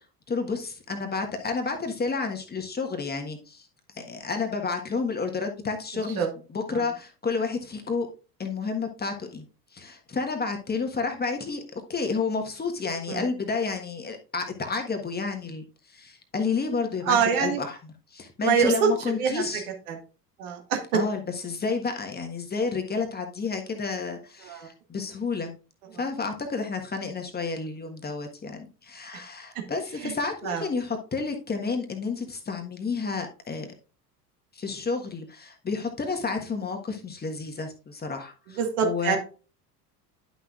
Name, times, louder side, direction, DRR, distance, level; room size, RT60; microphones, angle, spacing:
voice 1, 0.3-3.7 3.9-8.1 8.4-9.4 9.7-15.6 15.9-19.7 20.9-25.5 25.9-33.7 34.5-39.2, left 4 dB, 20° left, 4 dB, 1.4 m, -30 dB
voice 2, 17.1-17.6 18.4-19.5 19.9-20.0 20.4-20.8 24.4-24.7 30.0-30.1 30.4-30.6 38.5-39.2, right 7 dB, 60° right, 3 dB, 1.9 m, -25 dB
11.0 x 6.1 x 2.5 m, 0.35 s
figure-of-eight pair, 70°, 48 cm